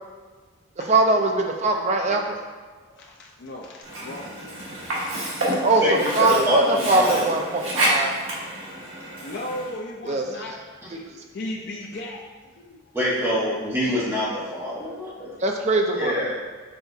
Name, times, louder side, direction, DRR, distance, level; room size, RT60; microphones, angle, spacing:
voice 1, 0.9-2.4 5.6-5.8 6.1-8.2 10.1-10.2 15.4-16.2, right 2 dB, 30° right, 2 dB, 0.4 m, -21 dB
voice 2, 2.8-5.8 8.9-12.8, left 1 dB, 55° left, -1 dB, 0.4 m, -37 dB
Sink (filling or washing), 3.8-9.8, right 1 dB, 80° right, 1.2 m, -29 dB
voice 3, 5.8-7.2 12.9-15.3 15.9-16.3, left 1 dB, 10° right, -10 dB, 1.2 m, -25 dB
5.6 x 3.4 x 2.7 m, 1.4 s
head